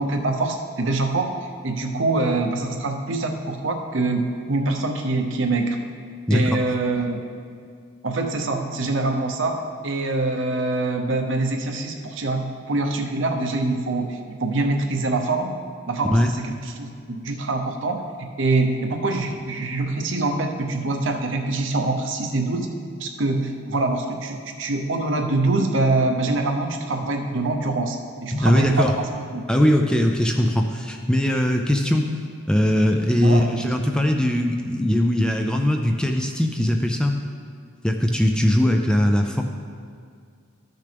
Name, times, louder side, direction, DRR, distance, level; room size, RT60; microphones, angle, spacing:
voice 1, 0.0-1.3 1.6-5.8 6.3-7.2 8.0-9.6 9.8-15.5 15.9-16.1 16.4-18.0 18.4-22.7 23.0-29.1 29.3-29.4 33.2-33.8, right 2 dB, 60° right, 4 dB, 0.8 m, -24 dB
voice 2, 6.3-6.6 16.1-16.3 28.3-28.9 29.5-32.1 32.5-37.1 37.8-39.4, left 1 dB, 5° left, 3 dB, 0.3 m, -20 dB
13.0 x 6.6 x 3.4 m, 2.2 s
head